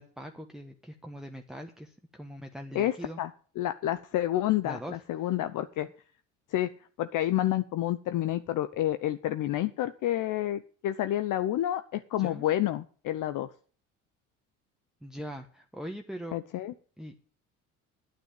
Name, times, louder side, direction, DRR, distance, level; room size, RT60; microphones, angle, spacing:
voice 1, 0.0-3.2 4.6-5.3 12.2-12.5 15.0-16.4 17.0-17.1, equal, ahead, 3 dB, 1.4 m, -42 dB
voice 2, 2.7-3.3 3.6-5.9 6.5-6.7 7.0-13.5 16.3-16.7, left 13 dB, 55° left, 11 dB, 0.9 m, -29 dB
9.5 x 9.0 x 8.8 m, 0.42 s
hypercardioid pair, 65°, 37 cm